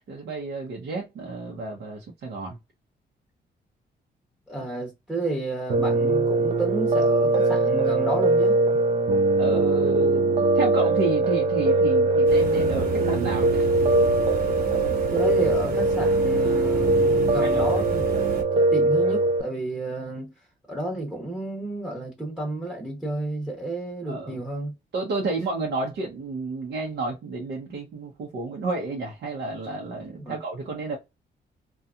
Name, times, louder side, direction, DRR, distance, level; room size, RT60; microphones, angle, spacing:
voice 1, 0.1-2.6 9.4-13.7 17.4-17.7 24.1-24.4 24.9-31.0, right 3 dB, 90° right, 0.8 m, -31 dB
voice 2, 4.5-8.6 14.9-20.3 20.7-24.7 30.2-30.4, right 1 dB, 5° right, 0.7 m, -31 dB
Piano, 5.7-19.4, right 2 dB, 40° right, 0.4 m, -21 dB
sound 1, 12.3-18.4, right 2 dB, 60° right, 0.9 m, -33 dB
2.8 x 2.3 x 2.3 m
wide cardioid pair, 150°, 17 cm